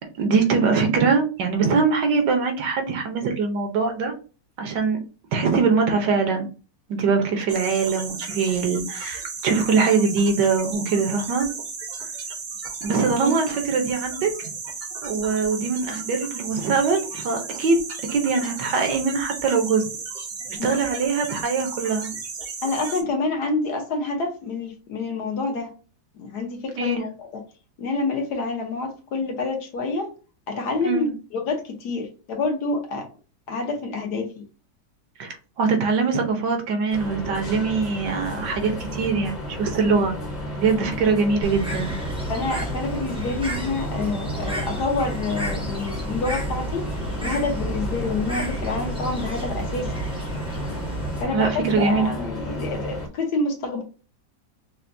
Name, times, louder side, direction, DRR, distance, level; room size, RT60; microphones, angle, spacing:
voice 1, 0.2-4.1 4.6-5.0 5.3-6.5 6.9-11.5 12.8-14.5 15.0-17.8 18.1-19.9 20.5-22.1 26.8-27.0 30.8-31.1 35.2-40.1 40.6-42.0 51.2-52.1, right 4 dB, 70° right, 1.5 m, -22 dB
sound 1, 7.5-23.0, right 5 dB, 45° right, 0.8 m, -34 dB
voice 2, 22.6-25.7 26.1-27.3 27.8-30.1 30.5-33.1 33.5-34.5 42.3-46.9 47.2-49.9 51.2-53.8, left 3 dB, 65° left, 1.4 m, -27 dB
sound 2, 36.9-53.1, equal, 30° left, 0.9 m, -33 dB
Bird, 41.4-51.2, right 1 dB, 10° right, 0.3 m, -31 dB
5.6 x 2.2 x 2.6 m
omnidirectional pair, 1.9 m